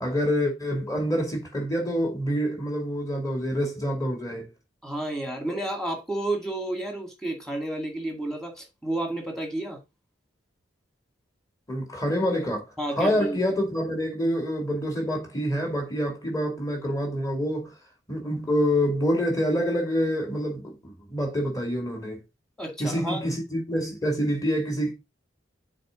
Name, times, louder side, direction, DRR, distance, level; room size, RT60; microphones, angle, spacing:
voice 1, 0.0-4.5 11.7-12.7 13.0-17.7 18.1-22.2 22.8-24.9, equal, 20° left, 2.6 m, -26 dB
voice 2, 4.8-9.8 12.8-13.4 22.6-23.3, right 1 dB, 5° left, 2.1 m, -31 dB
6.7 x 4.6 x 5.1 m
head